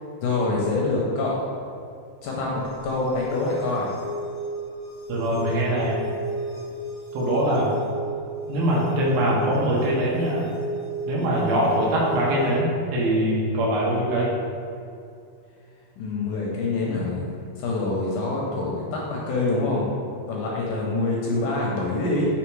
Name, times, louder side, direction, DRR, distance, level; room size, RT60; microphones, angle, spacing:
voice 1, 0.2-1.5 2.2-3.9 16.0-19.9 20.3-22.3, left 2 dB, 75° left, -3 dB, 2.0 m, -26 dB
sound 1, 2.6-12.6, right 2 dB, 50° left, 1.2 m, -33 dB
voice 2, 5.1-6.0 7.1-7.7 8.5-10.5 11.1-14.3, right 1 dB, 80° right, -4 dB, 2.9 m, -23 dB
6.2 x 3.5 x 4.6 m, 2.4 s
omnidirectional pair, 4.2 m